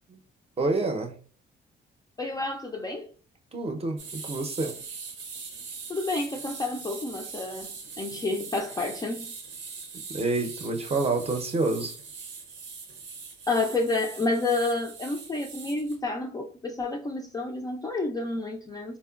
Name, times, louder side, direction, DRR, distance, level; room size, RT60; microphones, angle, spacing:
voice 1, 0.6-1.1 3.5-4.7 10.1-11.9, right 3 dB, 30° right, 0.6 m, -28 dB
voice 2, 2.2-3.1 5.9-9.3 13.5-19.0, left 2 dB, 20° left, 0.3 m, -30 dB
sound 1, 4.0-16.0, right 5 dB, 75° right, 0.6 m, -41 dB
3.6 x 2.1 x 2.3 m
cardioid pair, 90°, 20 cm